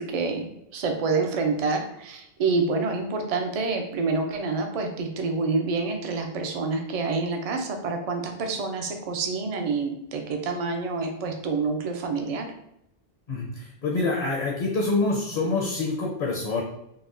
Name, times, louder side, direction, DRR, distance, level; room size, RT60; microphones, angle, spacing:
voice 1, 0.0-12.5, right 4 dB, 50° right, 4 dB, 0.4 m, -27 dB
voice 2, 13.3-16.6, left 3 dB, 50° left, -2 dB, 0.6 m, -26 dB
4.0 x 2.1 x 2.5 m, 0.80 s
omnidirectional pair, 1.0 m